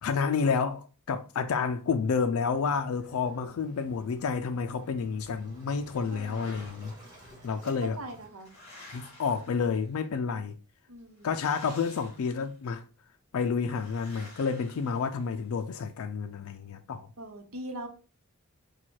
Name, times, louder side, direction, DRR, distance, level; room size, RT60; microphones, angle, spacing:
voice 1, 0.0-6.9 7.4-8.0 8.9-10.6 11.2-12.8 13.3-17.1, left 5 dB, 75° left, 0.4 m, -30 dB
Waves surf, 2.5-8.3, right 1 dB, 20° right, 1.7 m, -51 dB
sound 1, 5.9-7.1 7.9-10.1 11.2-12.6 13.7-15.6, left 1 dB, 30° left, 1.8 m, -52 dB
voice 2, 6.2-6.5 8.0-8.5 10.9-11.3 13.4-13.6 17.2-17.9, right 1 dB, 75° right, 0.9 m, -42 dB
4.3 x 2.3 x 4.5 m
head